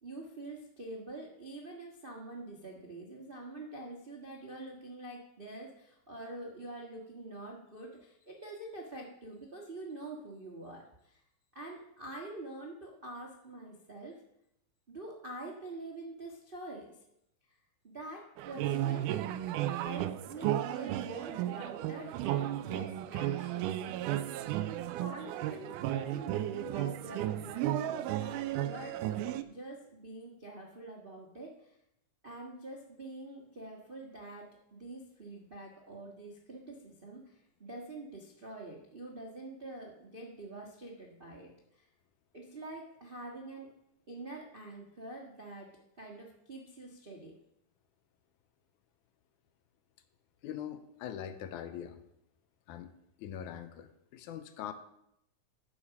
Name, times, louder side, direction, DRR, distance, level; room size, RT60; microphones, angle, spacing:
voice 1, 0.0-11.2 11.5-14.2 14.9-17.0 17.5-17.6 17.8-19.2 19.8-23.7 25.0-29.0 29.4-31.8 32.2-41.9 42.3-43.7 44.1-45.7 46.0-47.3, right 2 dB, 70° right, -1 dB, 0.5 m, -46 dB
sound 1, 18.4-29.4, right 12 dB, 90° right, 2.1 m, -34 dB
voice 2, 50.4-52.0 52.7-52.9 53.2-54.7, left 9 dB, 80° left, 10 dB, 2.1 m, -42 dB
11.5 x 5.0 x 7.1 m, 0.79 s
omnidirectional pair, 3.6 m